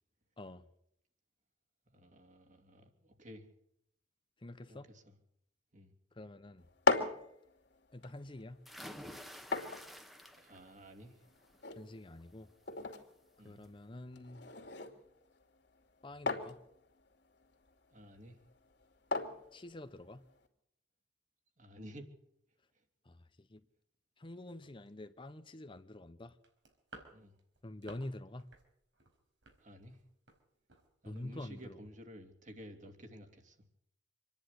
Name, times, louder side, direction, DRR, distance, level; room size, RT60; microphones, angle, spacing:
voice 1, 1.9-3.5 4.7-5.1 5.7-5.9 10.4-11.2 13.4-13.6 17.9-18.4 21.6-22.1 22.7-22.8 27.1-27.3 29.6-30.0 31.0-33.6, equal, 45° right, 2.8 m, -53 dB
voice 2, 4.4-4.9 6.1-6.7 7.9-8.6 11.7-12.5 13.4-14.4 16.0-16.6 19.5-20.2 23.0-23.6 24.2-26.4 27.6-28.5 31.1-31.8, left 1 dB, 30° left, 0.8 m, -47 dB
sound 1, 6.6-20.5, left 3 dB, 65° left, 2.7 m, -40 dB
sound 2, 8.7-10.7 11.1-11.6 13.0-13.1 13.5-13.6, equal, ahead, 1.3 m, -50 dB
sound 3, 26.4-28.1 28.4-28.7 28.9-30.4 30.7-30.9 31.2-31.3 31.6-31.7, right 3 dB, 85° right, 4.8 m, -56 dB
26.0 x 10.5 x 9.8 m
head